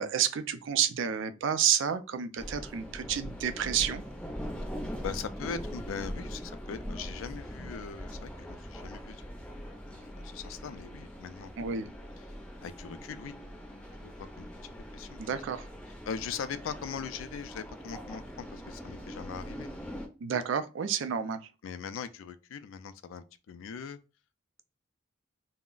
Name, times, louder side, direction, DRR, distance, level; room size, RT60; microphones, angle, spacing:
voice 1, 0.0-4.0 11.6-11.9 15.2-15.7 20.2-21.4, right 8 dB, 70° right, 0.4 m, -30 dB
sound 1, 2.4-20.1, equal, 5° left, 0.5 m, -42 dB
voice 2, 5.0-9.2 9.9-11.5 12.6-13.4 14.0-15.3 16.1-19.7 21.6-24.0, left 6 dB, 85° left, 0.3 m, -40 dB
2.3 x 2.0 x 3.7 m
head